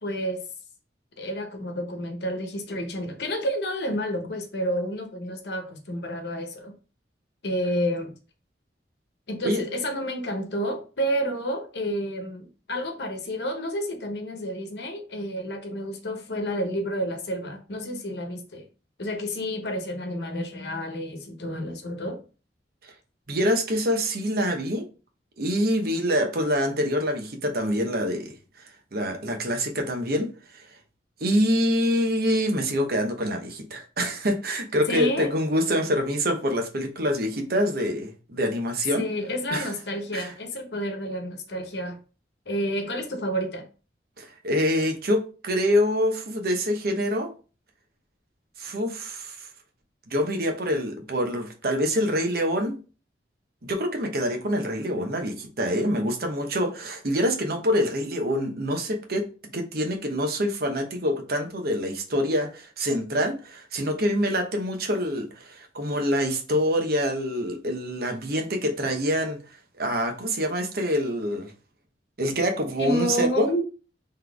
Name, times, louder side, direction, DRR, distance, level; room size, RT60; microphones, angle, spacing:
voice 1, 0.0-0.5 1.2-6.7 7.4-8.1 9.3-18.6 19.0-22.2 34.9-35.3 38.9-42.0 42.5-43.7 72.8-73.6, equal, 65° left, 1.0 m, -30 dB
voice 2, 23.3-24.8 25.4-30.8 31.2-39.1 39.5-39.7 40.1-40.3 44.2-47.3 48.6-49.5 50.1-52.8 53.6-69.4 69.8-71.5 72.2-73.5, equal, 60° right, 1.0 m, -26 dB
4.0 x 3.3 x 3.4 m
head